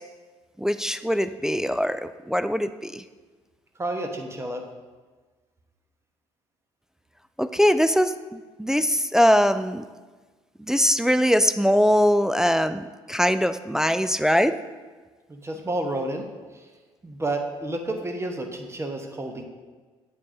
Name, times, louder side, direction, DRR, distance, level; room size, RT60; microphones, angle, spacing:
voice 1, 0.6-3.0 7.4-9.8 10.6-14.5, equal, 5° right, 11 dB, 0.3 m, -22 dB
voice 2, 3.8-4.6 15.3-16.3 16.5-16.7 17.0-19.4, right 1 dB, 20° right, 4 dB, 1.1 m, -30 dB
8.3 x 7.4 x 2.7 m, 1.4 s
hypercardioid pair, 50°, 14 cm